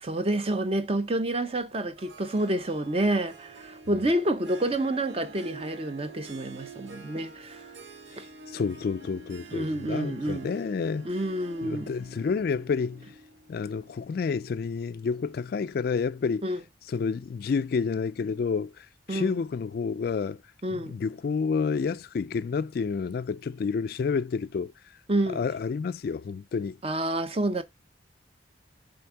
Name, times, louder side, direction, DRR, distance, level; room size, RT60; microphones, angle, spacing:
voice 1, 0.0-7.6 8.2-8.3 9.5-10.5 11.0-11.9 16.4-16.6 19.1-19.4 20.6-21.0 25.1-25.4 26.8-27.6, right 1 dB, 30° right, 0.7 m, -28 dB
Harp, 2.0-14.2, right 3 dB, 70° right, 0.9 m, -47 dB
voice 2, 8.5-11.1 11.6-13.1 13.5-16.5 16.9-20.4 20.7-24.7 25.3-26.8, left 5 dB, 50° left, 0.3 m, -29 dB
7.8 x 3.5 x 4.7 m
head